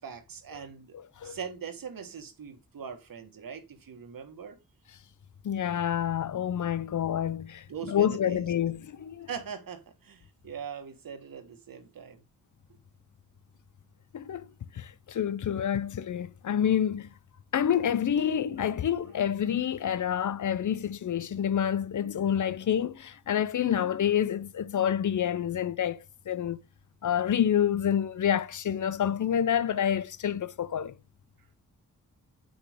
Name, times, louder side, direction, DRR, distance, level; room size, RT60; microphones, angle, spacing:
voice 1, 0.0-0.9 1.2-4.5 7.7-8.4 9.3-12.2, right 7 dB, 70° right, 1.5 m, -41 dB
voice 2, 0.9-1.4 5.4-9.3 14.1-14.5 14.7-17.1 17.5-26.6 27.0-30.9, left 9 dB, 55° left, 0.6 m, -28 dB
8.0 x 6.4 x 3.5 m
cardioid pair, 60°, 35 cm